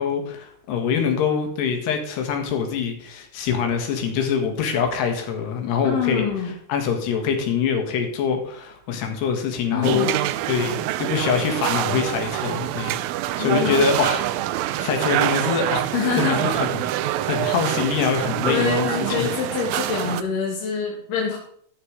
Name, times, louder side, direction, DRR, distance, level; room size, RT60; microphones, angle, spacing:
voice 1, 0.0-6.3 6.7-10.1 10.5-13.0 13.4-14.4 14.8-15.9 16.2-16.7 17.3-18.9 19.2-19.3, left 6 dB, 85° left, 4 dB, 3.8 m, -24 dB
voice 2, 5.8-6.5 9.7-10.1 13.4-13.9 15.9-16.4 17.1-17.4 18.5-21.4, left 6 dB, 60° left, -2 dB, 3.1 m, -26 dB
sound 1, 9.8-20.2, right 14 dB, 85° right, 2.1 m, -25 dB
12.5 x 6.9 x 4.8 m, 0.64 s
omnidirectional pair, 4.6 m